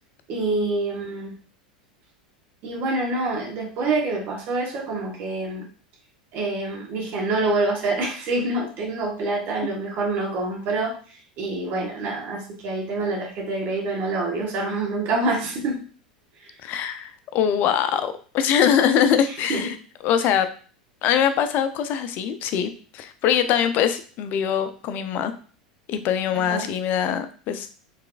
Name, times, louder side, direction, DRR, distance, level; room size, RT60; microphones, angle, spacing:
voice 1, 0.3-1.3 2.6-5.7 6.3-11.0 11.4-15.8 16.4-16.5 19.5-19.7 26.3-26.6, right 2 dB, 45° right, 0 dB, 1.3 m, -26 dB
voice 2, 16.6-19.8 20.0-20.5 21.0-25.3 25.9-27.7, left 9 dB, 45° left, 10 dB, 0.5 m, -23 dB
4.7 x 3.3 x 2.5 m, 0.41 s
figure-of-eight pair, 85°, 4 cm